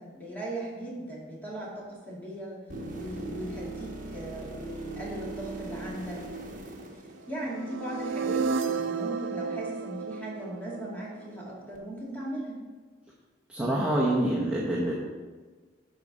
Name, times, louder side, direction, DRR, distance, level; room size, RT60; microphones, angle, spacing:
voice 1, 0.0-2.6 3.0-6.2 7.3-12.6, right 1 dB, 10° left, -6 dB, 2.3 m, -38 dB
sound 1, 2.7-7.8 11.7-11.8, right 2 dB, 45° right, 1.3 m, -40 dB
sound 2, 7.4-11.5, right 5 dB, 90° right, 0.4 m, -32 dB
voice 2, 13.5-14.9, right 1 dB, 5° right, -6 dB, 0.9 m, -26 dB
11.5 x 4.9 x 4.1 m, 1.4 s
head